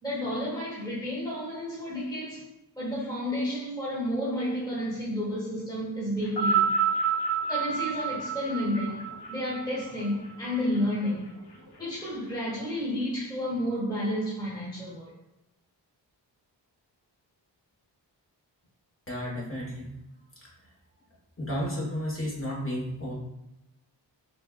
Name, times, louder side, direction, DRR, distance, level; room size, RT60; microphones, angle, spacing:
voice 1, 0.0-2.5 2.8-6.7 7.5-11.3 11.8-15.1, equal, 10° left, -8 dB, 1.0 m, -31 dB
sound 1, 6.2-10.8 11.7-11.8, right 5 dB, 65° left, 0.9 m, -28 dB
voice 2, 19.1-19.9 20.4-20.5 21.4-23.1, equal, 30° left, -4 dB, 1.4 m, -32 dB
5.2 x 2.7 x 2.4 m, 0.90 s
wide cardioid pair, 105°, 43 cm